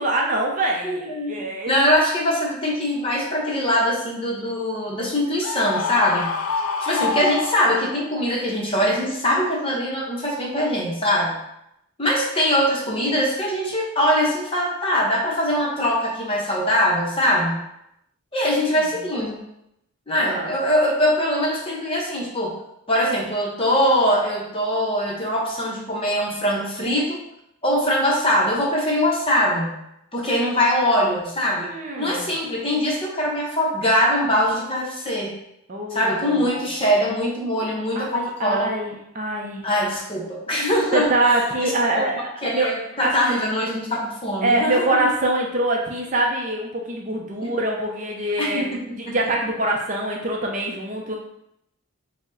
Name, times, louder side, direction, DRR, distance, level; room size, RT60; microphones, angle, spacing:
voice 1, 0.0-1.8 20.2-20.5 31.6-32.3 35.7-36.7 38.0-39.6 40.9-42.7 43.0-43.3 44.4-48.6 49.0-51.2, right 2 dB, 35° right, 0 dB, 0.5 m, -24 dB
voice 2, 0.8-6.3 6.8-11.4 12.0-17.6 18.3-19.4 20.1-22.6 22.9-27.2 27.6-29.8 30.1-31.7 32.0-35.4 35.9-38.7 39.6-45.1 47.4-47.5 48.4-48.8 49.1-49.2, equal, 25° left, -2 dB, 0.7 m, -22 dB
Screaming, 5.4-8.1, left 5 dB, 90° left, 0.3 m, -26 dB
4.9 x 2.1 x 3.8 m, 0.79 s
head